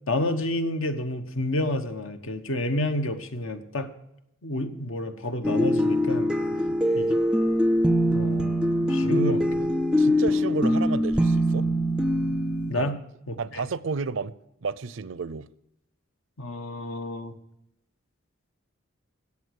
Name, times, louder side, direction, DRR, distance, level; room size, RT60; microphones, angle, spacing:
voice 1, 0.1-3.9 4.4-6.3 6.9-7.1 8.1-8.5 8.9-9.4 12.7-12.9 13.3-13.6 16.4-17.3, left 1 dB, 80° left, 1.2 m, -29 dB
sound 1, 5.4-12.7, equal, 5° right, 0.4 m, -23 dB
voice 2, 9.0-9.7 10.0-11.7 12.7-13.0 13.4-14.3 14.6-15.5, right 4 dB, 70° right, 0.5 m, -32 dB
14.0 x 8.5 x 6.5 m
head